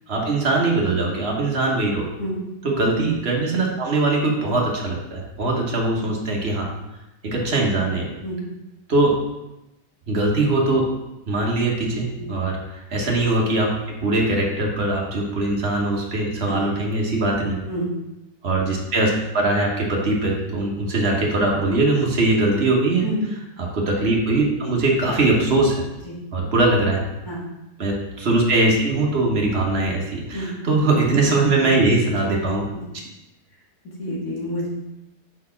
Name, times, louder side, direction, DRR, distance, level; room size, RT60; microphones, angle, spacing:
voice 1, 0.1-2.1 2.6-6.7 7.2-8.1 8.9-9.1 10.1-10.9 11.3-12.6 12.9-17.6 18.4-23.1 23.6-25.8 26.3-27.0 27.8-32.6, right 2 dB, 40° right, -1 dB, 1.3 m, -21 dB
voice 2, 34.0-34.7, equal, 60° left, -5 dB, 2.4 m, -29 dB
4.8 x 4.3 x 5.8 m, 0.96 s
omnidirectional pair, 1.8 m